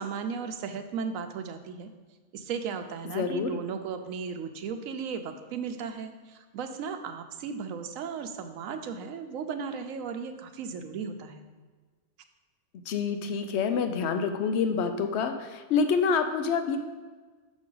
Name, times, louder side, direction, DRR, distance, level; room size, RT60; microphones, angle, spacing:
voice 1, 0.0-1.9 2.3-11.4, right 6 dB, 90° right, 7 dB, 1.0 m, -36 dB
voice 2, 3.1-3.5 12.7-16.8, left 5 dB, 65° left, 7 dB, 0.8 m, -27 dB
6.3 x 6.1 x 3.8 m, 1.4 s
omnidirectional pair, 1.4 m